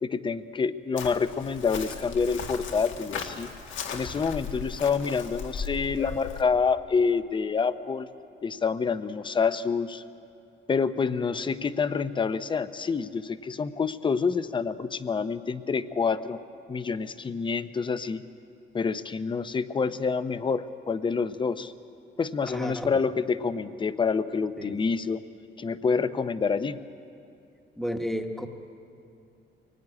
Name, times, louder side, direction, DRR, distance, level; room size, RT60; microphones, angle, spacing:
voice 1, 0.0-3.5 3.9-8.1 8.4-10.0 10.7-16.4 16.7-18.2 18.7-21.7 22.2-25.2 25.6-26.8, left 5 dB, 25° left, 13 dB, 0.7 m, -27 dB
Chirp tweet, 1.0-6.4, left 5 dB, 85° left, 2.0 m, -37 dB
voice 2, 22.5-22.9 24.6-24.8 27.8-28.5, equal, ahead, 5 dB, 1.2 m, -32 dB
24.5 x 18.5 x 9.7 m, 2.6 s
wide cardioid pair, 175°, 20 cm